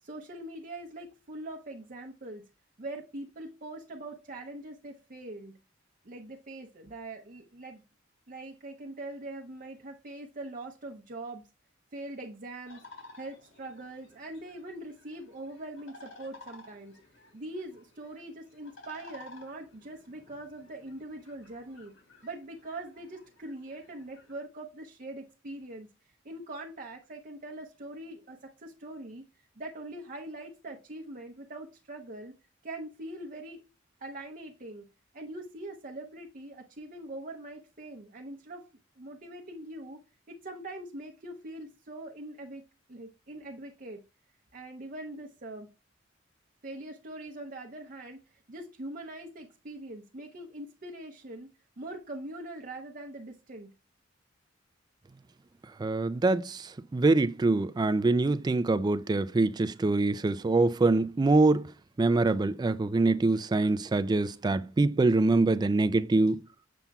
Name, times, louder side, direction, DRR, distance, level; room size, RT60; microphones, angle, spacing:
voice 1, 0.0-2.4 2.8-5.5 6.0-7.8 8.3-11.4 11.9-12.9 13.2-17.0 17.3-21.9 22.2-32.3 32.6-33.6 34.0-34.9 35.1-38.7 39.0-40.0 40.3-42.6 42.9-44.0 44.5-45.7 46.6-51.5 51.8-53.7, right 1 dB, 45° right, 0.7 m, -42 dB
sound 1, 12.7-24.3, left 3 dB, 85° left, 3.3 m, -54 dB
voice 2, 55.8-61.7 62.0-66.4, right 2 dB, 20° right, 0.3 m, -24 dB
7.1 x 6.8 x 2.3 m
head